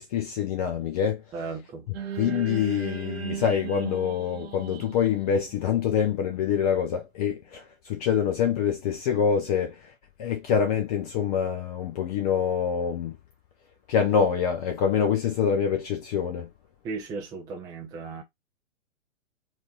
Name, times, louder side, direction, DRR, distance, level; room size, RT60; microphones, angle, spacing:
voice 1, 0.0-1.2 2.2-9.9 10.2-13.1 13.9-16.5, left 7 dB, 30° left, 0.8 m, -25 dB
voice 2, 1.3-1.9 16.8-18.2, right 4 dB, 10° right, 0.6 m, -36 dB
sound 1, 1.9-6.3, right 8 dB, 50° right, 0.9 m, -37 dB
4.5 x 2.8 x 4.1 m
figure-of-eight pair, 115°, 39 cm